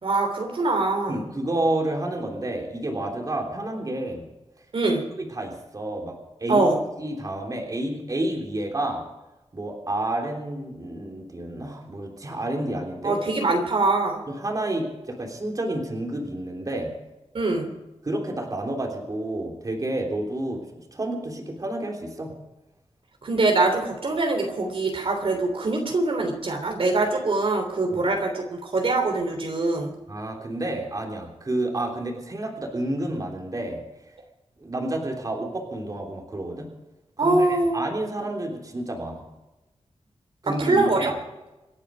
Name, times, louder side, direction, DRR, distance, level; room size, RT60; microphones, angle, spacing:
voice 1, 0.0-1.2 4.7-5.0 6.5-6.8 13.0-14.2 17.3-17.7 23.2-29.9 37.2-37.8 40.5-41.1, right 2 dB, 55° right, 3 dB, 3.2 m, -23 dB
voice 2, 1.1-4.3 5.2-6.7 7.0-9.1 9.5-13.2 14.3-16.9 18.0-22.3 27.9-28.1 30.1-33.8 34.6-36.7 37.2-39.3 40.4-41.1, right 1 dB, 35° right, 1 dB, 3.4 m, -30 dB
27.0 x 10.0 x 5.2 m, 1.0 s
wide cardioid pair, 145°, 11 cm